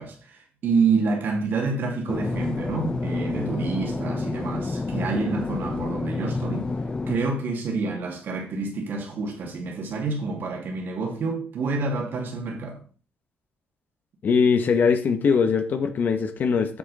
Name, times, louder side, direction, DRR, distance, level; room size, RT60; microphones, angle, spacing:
voice 1, 0.0-6.7 7.1-12.8, right 4 dB, 60° right, 2.4 m, -28 dB
sound 1, 2.1-7.2, left 3 dB, 25° left, 0.8 m, -29 dB
voice 2, 14.2-16.8, left 5 dB, 50° left, 1.3 m, -21 dB
8.4 x 7.7 x 4.2 m
cardioid pair, 140°, 4 cm